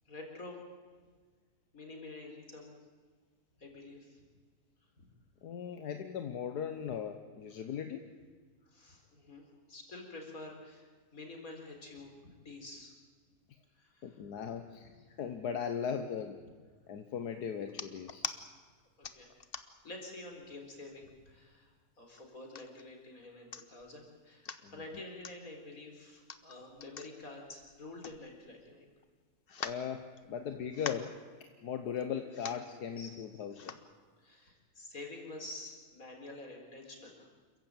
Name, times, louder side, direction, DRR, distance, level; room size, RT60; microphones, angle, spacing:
voice 1, 0.1-0.6 1.7-2.8 3.6-4.2 5.0-5.1 8.6-12.9 13.8-14.2 19.0-19.3 19.8-28.9 33.0-33.1 34.2-37.3, left 2 dB, 60° left, 2 dB, 4.4 m, -48 dB
voice 2, 5.4-8.1 14.0-16.4 16.9-18.2 24.6-24.7 29.6-33.8, left 7 dB, 85° left, 7 dB, 1.6 m, -38 dB
sound 1, 17.7-18.4 19.0-19.9 20.4-20.6 20.9-21.5 22.2-22.8 23.2-23.3 23.5-23.9 24.3-24.6 25.2-25.4 26.1-28.7 29.0-29.1 29.5-30.4 30.7-31.2 32.0-32.1 32.3-32.7 33.5-33.9 34.5-34.6, left 6 dB, 40° left, 1.1 m, -43 dB
27.5 x 15.0 x 9.0 m, 1.5 s
omnidirectional pair, 1.7 m